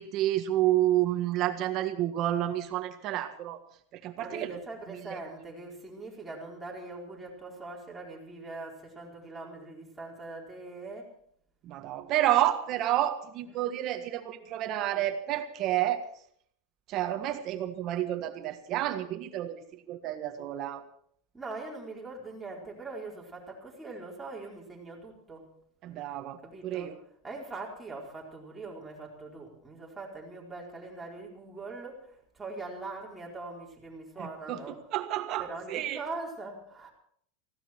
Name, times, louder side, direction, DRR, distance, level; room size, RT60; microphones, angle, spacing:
voice 1, 0.0-3.6 3.9-4.6 4.9-5.2 11.6-16.1 16.9-20.8 25.8-27.0 34.2-36.0, right 13 dB, 40° right, 8 dB, 1.6 m, -30 dB
voice 2, 4.2-11.1 13.5-13.6 21.3-25.5 26.4-26.9 27.2-34.8 35.4-36.9, right 3 dB, 5° right, -3 dB, 4.4 m, -42 dB
19.0 x 16.5 x 4.5 m, 0.64 s
supercardioid pair, 155°, 0 cm